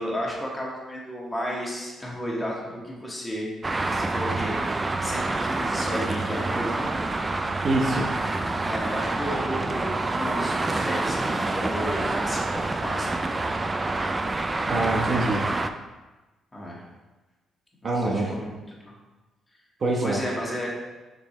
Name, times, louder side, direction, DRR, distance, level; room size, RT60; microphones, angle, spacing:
voice 1, 0.0-3.5 3.8-6.9 8.6-13.5 16.5-16.8 17.8-18.9 20.0-20.7, equal, 15° left, -4 dB, 2.1 m, -33 dB
Traffic noise roadway noise, 3.6-15.7, right 2 dB, 25° right, 0.4 m, -27 dB
voice 2, 7.6-8.0 14.7-15.5 17.8-18.3 19.8-20.2, right 2 dB, 45° right, -1 dB, 1.1 m, -24 dB
6.9 x 5.5 x 3.3 m, 1.2 s
cardioid pair, 90°, 0 cm